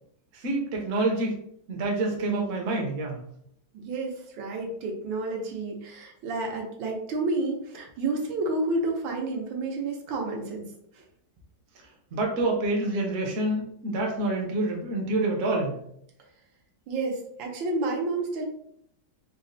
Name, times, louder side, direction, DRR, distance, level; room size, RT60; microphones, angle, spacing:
voice 1, 0.3-1.4 1.7-3.2 12.1-15.8, right 2 dB, 60° right, 0 dB, 0.8 m, -27 dB
voice 2, 2.1-2.6 3.7-10.7 10.9-11.0 16.9-18.4, right 2 dB, 85° right, 0 dB, 1.5 m, -30 dB
4.0 x 2.1 x 2.6 m, 0.69 s
omnidirectional pair, 2.0 m